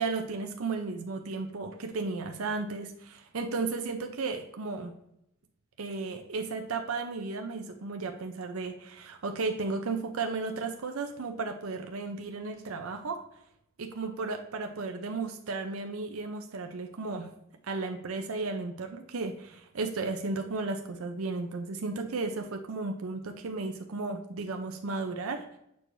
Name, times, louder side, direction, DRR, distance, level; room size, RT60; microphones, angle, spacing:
voice 1, 0.0-4.9 5.8-13.2 13.8-17.3 17.7-25.4, right 3 dB, 75° right, 4 dB, 0.6 m, -34 dB
8.3 x 4.6 x 2.6 m, 0.78 s
head